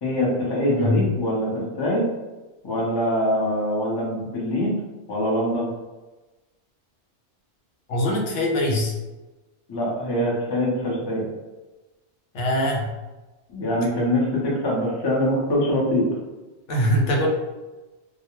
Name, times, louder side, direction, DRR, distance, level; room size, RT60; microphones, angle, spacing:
voice 1, 0.0-2.1 2.6-4.7 5.1-5.7 9.7-11.3 13.5-16.0, equal, 30° left, -4 dB, 0.5 m, -23 dB
voice 2, 7.9-8.9 12.3-12.9 16.7-17.3, left 1 dB, 90° left, 0 dB, 0.9 m, -22 dB
2.3 x 2.2 x 2.9 m, 1.1 s
omnidirectional pair, 1.2 m